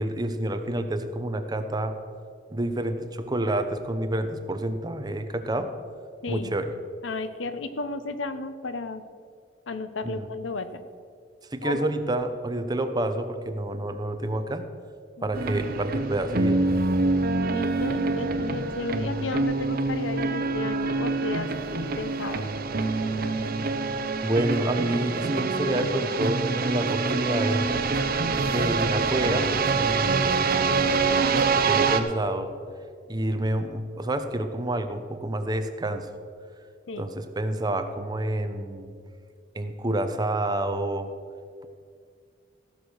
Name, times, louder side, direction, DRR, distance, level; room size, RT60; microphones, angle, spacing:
voice 1, 0.0-1.9 2.5-5.7 6.3-6.7 10.0-10.3 11.5-14.7 15.2-16.6 24.2-27.7 28.4-30.5 31.7-32.5 33.1-36.1 37.0-38.9 39.5-41.1, right 1 dB, 20° right, 8 dB, 0.7 m, -28 dB
voice 2, 6.2-6.6 7.0-9.0 9.7-10.8 11.6-11.8 15.2-15.3 17.5-21.5 22.0-22.5 36.9-37.1, left 3 dB, 90° left, 11 dB, 0.7 m, -33 dB
sound 1, 15.3-32.0, right 3 dB, 55° right, 0.7 m, -25 dB
14.5 x 6.5 x 6.3 m, 2.2 s
head